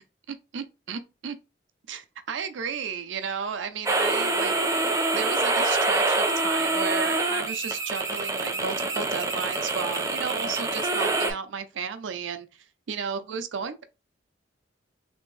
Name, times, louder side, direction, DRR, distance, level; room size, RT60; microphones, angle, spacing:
voice 1, 0.3-1.4 1.9-4.5 5.1-13.8, right 6 dB, 75° right, 0.5 m, -33 dB
sound 1, 3.9-11.3, right 2 dB, 15° right, 0.5 m, -26 dB
3.4 x 2.5 x 3.2 m
head